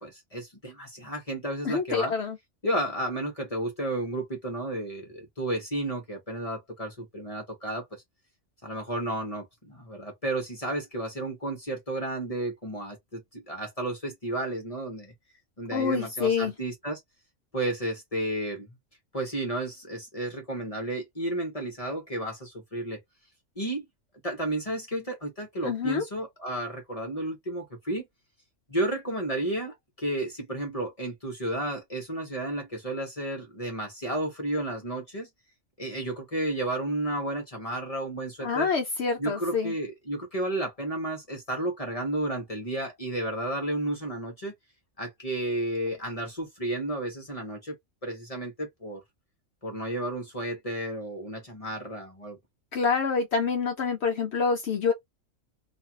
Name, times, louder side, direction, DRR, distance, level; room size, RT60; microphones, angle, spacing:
voice 1, 0.0-2.1 2.6-7.8 8.6-15.1 15.6-17.0 17.5-18.7 19.1-23.0 23.6-23.9 24.2-28.1 28.7-35.3 35.8-38.7 39.2-44.5 45.0-47.8 48.0-49.0 49.6-52.4, right 1 dB, 30° left, 0.9 m, -32 dB
voice 2, 1.6-2.4 15.7-16.5 25.6-26.0 38.4-39.7 52.7-54.9, left 5 dB, 60° left, 0.8 m, -27 dB
2.6 x 2.3 x 2.8 m
omnidirectional pair, 1.4 m